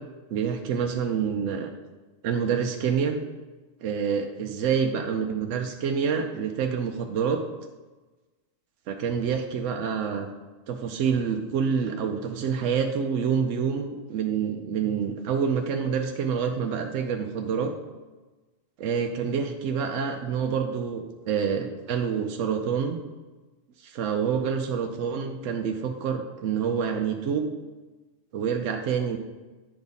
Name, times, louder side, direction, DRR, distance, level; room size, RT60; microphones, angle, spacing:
voice 1, 0.3-1.7 2.2-3.2 3.8-7.4 8.9-10.3 10.7-17.7 18.8-23.0 23.8-27.5 28.3-29.2, right 6 dB, 80° right, 4 dB, 0.9 m, -27 dB
9.8 x 3.5 x 4.0 m, 1.2 s
omnidirectional pair, 1.3 m